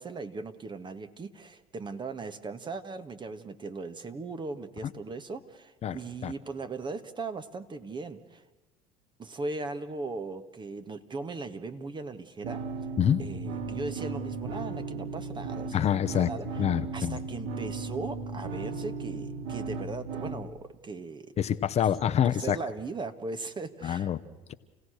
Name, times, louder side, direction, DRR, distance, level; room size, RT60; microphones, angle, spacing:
voice 1, 0.0-8.4 9.2-12.6 13.2-16.6 16.9-21.3 21.8-21.9 22.2-24.1, right 3 dB, 30° right, 9 dB, 1.7 m, -38 dB
sound 1, 12.4-20.4, right 4 dB, 70° right, 2.3 m, -36 dB
voice 2, 15.7-16.3 16.6-17.2 21.4-22.6 23.8-24.2, left 9 dB, 40° left, 10 dB, 0.9 m, -26 dB
29.0 x 17.0 x 6.5 m, 1.1 s
hypercardioid pair, 80°, 17 cm